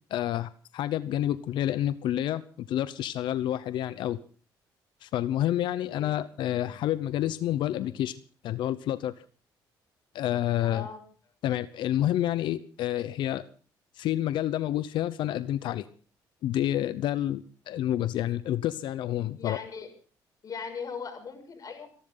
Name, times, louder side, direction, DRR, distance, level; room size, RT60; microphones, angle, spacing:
voice 1, 0.1-4.2 5.0-9.1 10.1-10.9 11.4-13.4 14.0-15.9 16.4-19.6, left 12 dB, 75° left, 15 dB, 0.8 m, -29 dB
voice 2, 10.6-11.0 19.4-19.9 20.4-21.9, left 5 dB, 45° left, 6 dB, 6.5 m, -39 dB
29.5 x 11.5 x 3.9 m, 0.39 s
cardioid pair, 90°, 8 cm